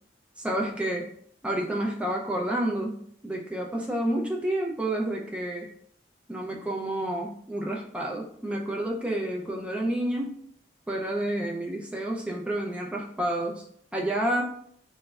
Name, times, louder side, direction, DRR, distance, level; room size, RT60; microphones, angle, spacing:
voice 1, 0.4-1.1 1.4-5.7 6.3-10.4 10.9-13.6 13.9-14.5, right 1 dB, 5° right, -1 dB, 0.4 m, -29 dB
2.3 x 2.0 x 3.2 m, 0.64 s
head